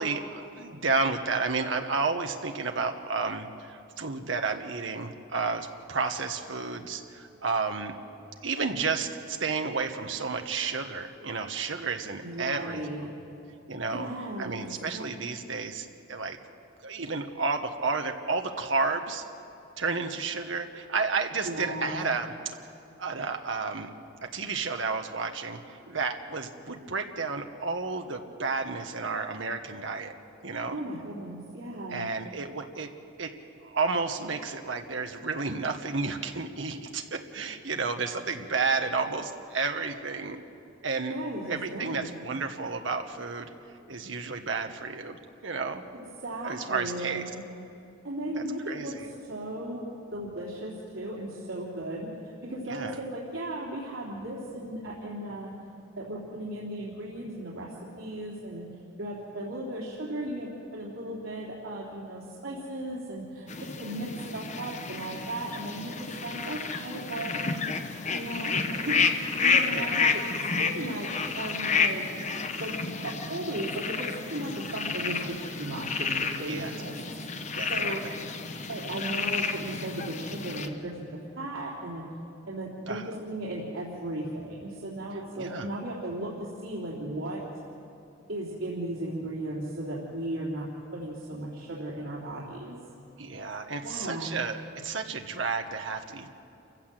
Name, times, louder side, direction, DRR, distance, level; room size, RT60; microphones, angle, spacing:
voice 1, 0.0-8.0 8.4-13.1 13.7-14.1 14.4-16.4 16.8-19.2 19.8-22.3 23.0-23.9 24.2-30.2 30.4-30.8 31.9-32.9 33.2-33.3 33.6-40.4 40.8-41.1 41.5-43.5 43.9-45.8 46.4-47.3 48.3-49.1 52.7-53.0 69.7-69.9 76.5-76.7 77.5-78.1 82.9-83.1 85.4-85.7 93.2-96.3, right 4 dB, 70° right, 5 dB, 1.3 m, -31 dB
voice 2, 12.2-13.0 13.9-14.6 14.9-15.0 21.4-22.0 30.7-32.1 41.1-42.2 45.9-47.4 48.0-52.1 52.4-55.5 56.0-58.7 59.0-67.4 68.1-72.1 72.6-77.0 77.4-78.0 78.7-82.0 82.5-87.4 88.3-92.8 93.8-94.4, right 1 dB, 90° right, -5 dB, 3.3 m, -36 dB
sound 1, 63.5-80.7, left 5 dB, 35° left, 1.0 m, -30 dB
28.0 x 15.5 x 7.7 m, 2.6 s
head